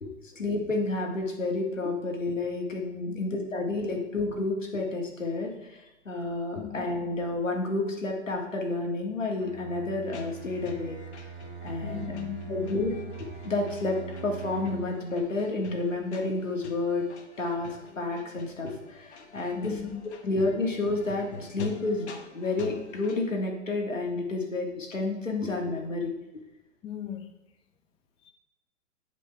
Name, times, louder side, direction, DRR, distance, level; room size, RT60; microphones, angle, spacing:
voice 1, 0.4-5.8 6.1-11.0 11.6-12.1 12.5-12.9 13.2-17.1 17.4-19.8 20.3-26.1, left 2 dB, 90° left, 1 dB, 1.9 m, -30 dB
Bowed string instrument, 9.4-15.1, right 5 dB, 50° right, 1.6 m, -42 dB
sound 1, 10.1-23.2, left 3 dB, 65° left, 1.3 m, -46 dB
voice 2, 11.8-12.7 19.5-19.9 20.2-20.3 26.8-27.3 28.2-28.3, left 9 dB, 15° left, 4 dB, 0.6 m, -38 dB
8.6 x 5.1 x 4.5 m, 0.92 s
figure-of-eight pair, 120°, 37 cm